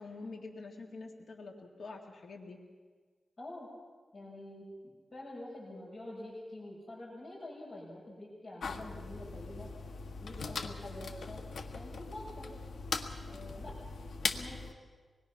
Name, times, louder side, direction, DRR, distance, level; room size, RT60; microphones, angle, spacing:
voice 1, 0.0-2.6, left 3 dB, 60° left, 1 dB, 2.2 m, -46 dB
voice 2, 3.4-3.7 4.1-9.7 10.2-11.4 11.6-12.5 13.2-13.7 14.3-14.8, left 1 dB, 45° left, -4 dB, 6.2 m, -47 dB
sound 1, 8.6-14.7, left 4 dB, 80° left, 1.4 m, -40 dB
25.0 x 21.0 x 5.8 m, 1.5 s
wide cardioid pair, 155°, 0 cm